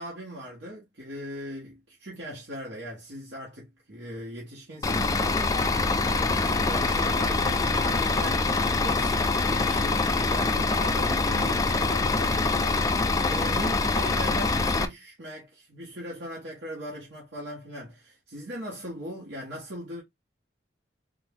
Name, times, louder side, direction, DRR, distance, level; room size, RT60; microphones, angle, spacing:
voice 1, 0.0-8.5 8.8-20.0, equal, 90° right, 1.4 m, -39 dB
Bus / Idling, 4.8-14.8, left 3 dB, 20° left, 0.4 m, -24 dB
3.6 x 2.6 x 3.5 m
head